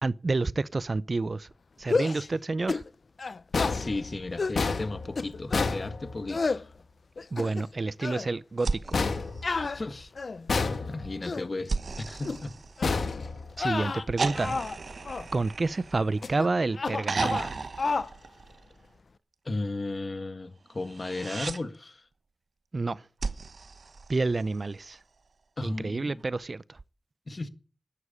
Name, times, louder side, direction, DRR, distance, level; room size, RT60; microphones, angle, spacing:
voice 1, 0.0-1.5 1.8-2.8 7.3-9.0 13.6-14.6 15.3-17.4 22.7-23.0 24.1-25.0 25.6-26.6, right 3 dB, 50° right, 0.7 m, -29 dB
sound 1, 1.8-2.2 2.7-2.9 3.2-3.8 4.4-4.6 5.2-5.7 6.3-6.6 7.2-7.7 8.0-8.3 9.4-10.5 11.0-11.5 12.2-12.4 12.8-13.0 13.5-14.8 15.0-15.3 16.2-16.5 16.7-17.5 17.8-18.1, left 4 dB, 65° left, 0.7 m, -31 dB
sound 2, 3.5-6.6 8.9-10.0 10.5-11.3 12.8-13.9, left 4 dB, 85° left, 1.7 m, -30 dB
voice 2, 3.7-6.7 9.7-10.1 10.8-12.5 19.4-22.1 25.6-26.3 27.3-27.5, left 2 dB, 45° left, 1.8 m, -35 dB
sound 3, 8.6-10.2 11.7-13.4 14.2-16.4 17.0-18.9 20.8-21.6 23.2-24.7 26.2-26.3, right 4 dB, 70° right, 1.0 m, -35 dB
12.5 x 9.8 x 8.6 m
wide cardioid pair, 60°, 0 cm